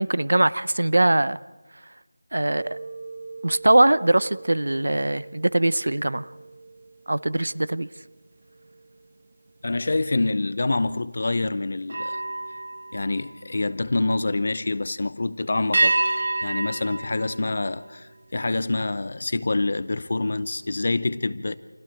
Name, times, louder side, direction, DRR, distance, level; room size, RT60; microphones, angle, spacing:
voice 1, 0.0-1.4 2.3-2.8 3.4-6.3 7.1-7.9, right 1 dB, 60° right, 0.8 m, -21 dB
sound 1, 2.5-8.1 8.6-8.9 11.8-14.0 15.7-18.3, right 2 dB, 35° right, 1.0 m, -31 dB
voice 2, 9.6-12.2 12.9-21.5, left 2 dB, 30° left, 0.7 m, -26 dB
29.5 x 28.0 x 4.5 m
figure-of-eight pair, 180°, 0 cm